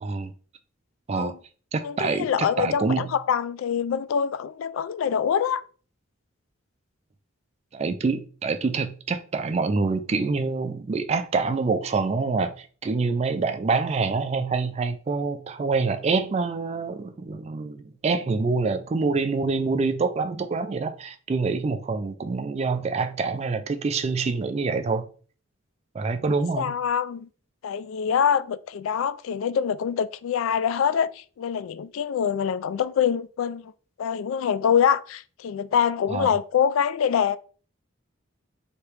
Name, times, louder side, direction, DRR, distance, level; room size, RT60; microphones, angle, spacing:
voice 1, 0.0-0.3 1.1-1.3 1.7-2.3 2.6-3.0 7.7-25.1 25.9-26.7 36.1-36.3, right 4 dB, 30° right, 0.3 m, -26 dB
voice 2, 1.8-5.6 26.6-27.3 27.6-33.7 34.0-37.4, left 7 dB, 85° left, 0.3 m, -25 dB
3.2 x 2.9 x 4.6 m
head